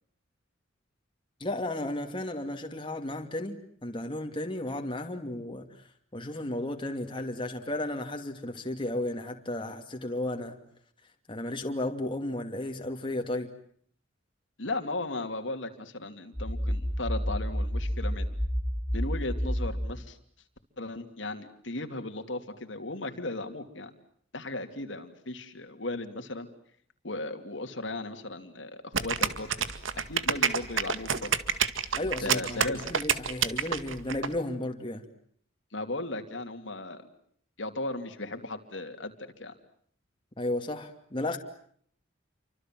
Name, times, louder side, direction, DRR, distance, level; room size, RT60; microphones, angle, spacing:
voice 1, 1.4-5.7 6.1-10.6 11.3-13.5 32.0-35.0 40.4-41.4, left 1 dB, 25° left, 4 dB, 2.6 m, -34 dB
voice 2, 14.6-18.3 18.9-20.2 20.8-23.9 24.3-26.5 27.0-29.5 29.9-31.3 32.2-32.9 35.7-37.0 37.6-39.1 39.4-39.5, left 2 dB, 70° left, 6 dB, 2.9 m, -36 dB
sound 1, 16.3-19.9, equal, 5° right, 5.1 m, -30 dB
sound 2, 28.9-34.3, right 7 dB, 85° right, 2.0 m, -28 dB
29.5 x 25.5 x 7.7 m, 0.62 s
head